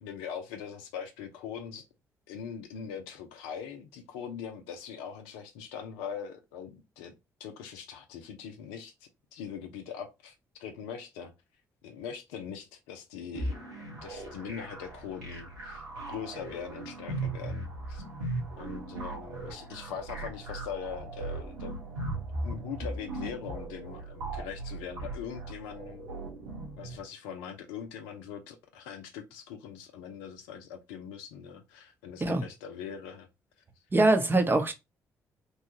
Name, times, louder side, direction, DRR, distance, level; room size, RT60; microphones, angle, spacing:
voice 1, 0.0-1.9 2.3-7.1 7.4-11.3 11.8-18.0 18.6-21.9 22.4-26.1 26.8-33.3, left 7 dB, 70° left, 0.5 m, -42 dB
sound 1, 13.3-27.0, right 2 dB, 80° right, 1.0 m, -38 dB
voice 2, 33.9-34.7, right 2 dB, 25° right, 0.7 m, -23 dB
3.0 x 2.3 x 2.8 m
figure-of-eight pair, 45°, 9 cm